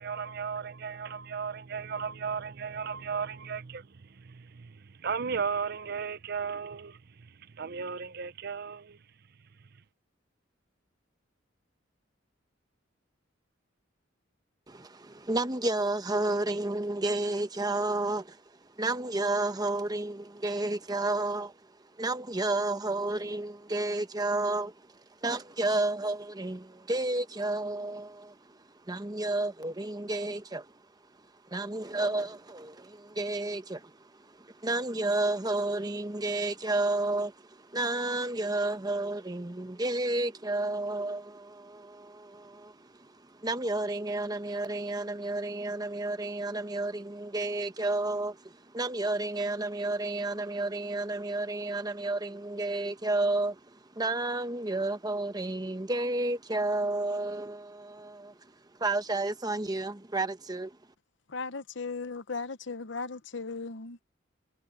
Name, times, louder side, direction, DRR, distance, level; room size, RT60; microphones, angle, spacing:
voice 1, 0.0-9.0 9.7-9.8, right 6 dB, 55° right, 0.6 m, -36 dB
voice 2, 14.7-30.7 31.4-58.5 58.8-60.8, right 2 dB, 20° right, 1.0 m, -31 dB
voice 3, 61.3-64.0, left 4 dB, 65° left, 0.9 m, -37 dB
head